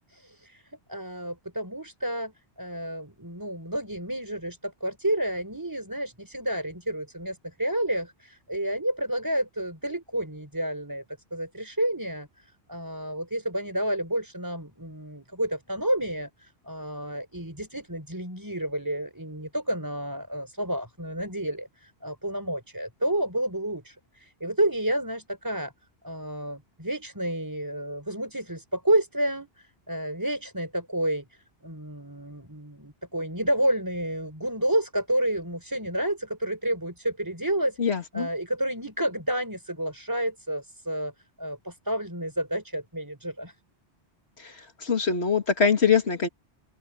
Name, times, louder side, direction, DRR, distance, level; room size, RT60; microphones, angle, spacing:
voice 1, 0.1-11.0 11.3-25.7 26.0-37.8 38.1-41.1 41.4-43.5, right 1 dB, 20° right, 4.9 m, -30 dB
voice 2, 37.8-38.3 44.4-46.3, left 6 dB, 80° left, 2.6 m, -24 dB
open air
omnidirectional pair, 1.1 m